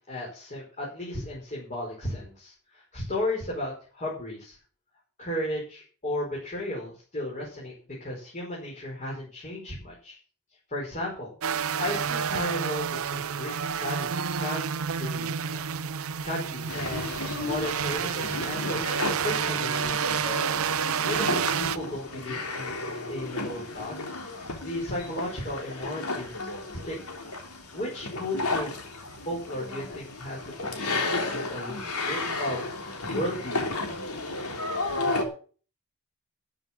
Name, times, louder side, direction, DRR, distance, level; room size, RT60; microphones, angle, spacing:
voice 1, 0.0-4.6 5.2-7.7 8.0-10.2 10.7-11.4 11.8-14.7 14.9-15.6 16.2-17.1 17.5-20.2 20.7-22.8 23.1-24.0 24.6-27.0 27.7-28.8 29.2-32.9 33.1-33.7, left 1 dB, 35° left, -4 dB, 5.4 m, -35 dB
sound 1, 11.4-21.8, right 7 dB, 65° right, 0.6 m, -29 dB
sound 2, 16.7-35.2, left 2 dB, 80° left, 3.4 m, -33 dB
13.0 x 7.2 x 7.6 m, 0.40 s
head